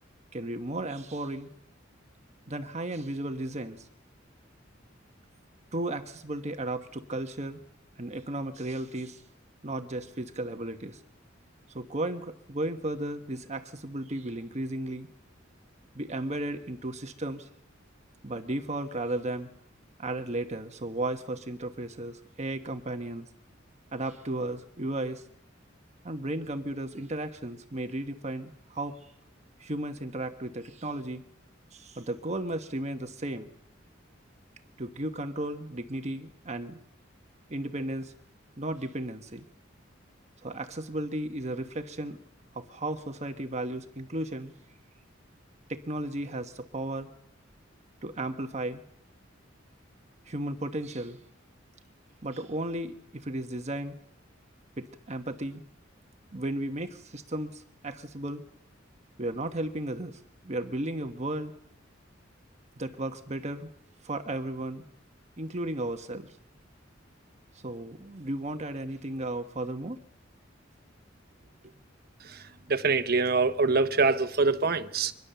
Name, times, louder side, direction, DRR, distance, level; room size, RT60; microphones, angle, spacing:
voice 1, 0.3-1.5 2.5-3.9 5.7-7.6 8.0-9.2 9.6-11.0 11.7-15.1 15.9-17.5 18.2-19.5 20.0-23.3 23.9-25.2 26.0-29.0 29.6-31.2 31.7-33.5 34.8-36.8 37.5-38.1 38.6-39.5 40.4-42.2 42.5-44.5 45.7-47.1 48.0-48.8 50.3-51.2 52.2-54.0 54.8-55.6 56.3-58.4 59.2-61.5 62.8-63.7 64.0-64.8 65.4-66.4 67.6-70.0 71.6-71.7, right 1 dB, 35° right, 1.2 m, -34 dB
voice 2, 72.7-75.1, right 4 dB, 55° right, 1.1 m, -24 dB
24.0 x 20.5 x 6.9 m
head